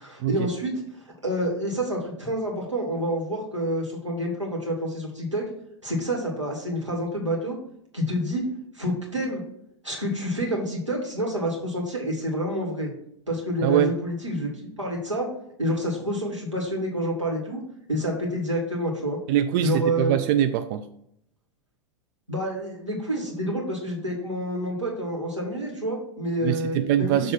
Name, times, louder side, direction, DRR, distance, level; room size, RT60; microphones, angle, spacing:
voice 1, 0.0-5.5 5.8-7.6 7.9-8.5 8.7-9.4 9.8-12.9 13.3-15.3 15.6-17.6 17.9-19.2 19.6-20.1 22.3-27.3, equal, 90° right, -2 dB, 1.9 m, -28 dB
voice 2, 13.6-13.9 19.3-20.8 26.4-27.3, right 11 dB, 45° right, 9 dB, 0.4 m, -23 dB
7.0 x 3.2 x 5.7 m, 0.73 s
figure-of-eight pair, 90°, 15 cm